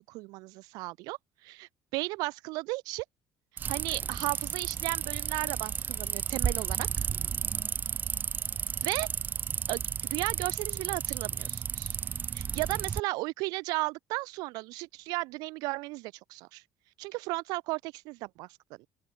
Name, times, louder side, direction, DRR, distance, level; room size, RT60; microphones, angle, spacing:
voice 1, 0.0-3.0 3.7-7.0 8.8-9.1 9.7-12.0 12.3-16.6 17.0-18.5 18.8-18.9, right 23 dB, 85° right, 0.6 m, -35 dB
sound 1, 3.6-13.0, right 7 dB, 30° right, 0.5 m, -33 dB
open air
cardioid pair, 150°, 6 cm